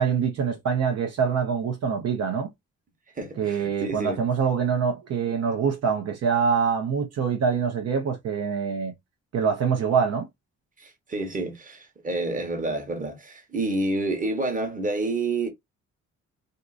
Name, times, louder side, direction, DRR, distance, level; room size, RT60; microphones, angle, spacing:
voice 1, 0.0-2.5 3.4-8.9 9.3-10.3, right 6 dB, 60° right, 0.7 m, -25 dB
voice 2, 3.2-4.2 10.8-15.5, right 2 dB, 25° right, 1.1 m, -29 dB
2.7 x 2.5 x 2.3 m
cardioid pair, 90°, 30 cm